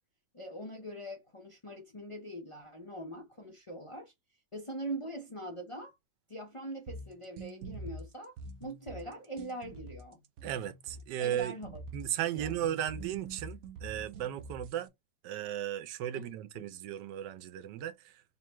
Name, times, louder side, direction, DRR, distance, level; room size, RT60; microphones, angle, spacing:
voice 1, 0.3-4.1 4.5-5.9 6.3-8.3 8.6-10.2 11.2-11.8 12.3-12.5 16.1-16.3 16.5-16.7, right 1 dB, 45° left, 0.4 m, -42 dB
sound 1, 6.9-14.9, right 3 dB, 65° right, 0.9 m, -45 dB
voice 2, 10.4-11.5 11.9-14.9 15.2-18.2, right 11 dB, 90° right, 1.2 m, -36 dB
3.6 x 2.2 x 4.4 m
omnidirectional pair, 1.8 m